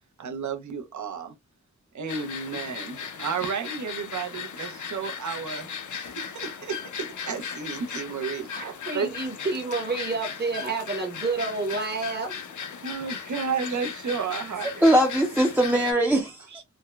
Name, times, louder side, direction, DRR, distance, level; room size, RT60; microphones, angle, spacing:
voice 1, 0.2-1.3 1.9-5.7 5.9-9.1 12.8-14.7, right 6 dB, 75° right, 0.6 m, -32 dB
sound 1, 2.1-15.9, left 7 dB, 80° left, 0.5 m, -37 dB
voice 2, 8.5-12.4, right 3 dB, 35° right, 0.8 m, -29 dB
voice 3, 14.6-16.6, right 1 dB, 5° right, 0.4 m, -21 dB
3.3 x 2.1 x 2.2 m
wide cardioid pair, 75°, 30 cm